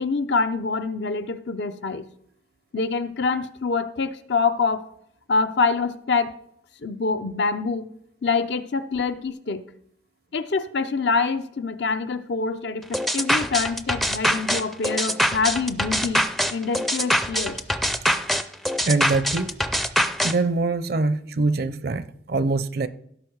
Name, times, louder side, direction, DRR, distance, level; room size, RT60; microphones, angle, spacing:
voice 1, 0.0-2.1 2.7-4.9 5.3-6.4 6.8-7.9 8.2-9.6 10.3-16.2 16.5-17.6, left 4 dB, 70° left, 0.6 m, -25 dB
sound 1, 12.9-20.3, equal, ahead, 0.4 m, -23 dB
voice 2, 18.9-19.6 20.2-22.9, right 3 dB, 60° right, 0.5 m, -24 dB
16.0 x 5.6 x 4.7 m
head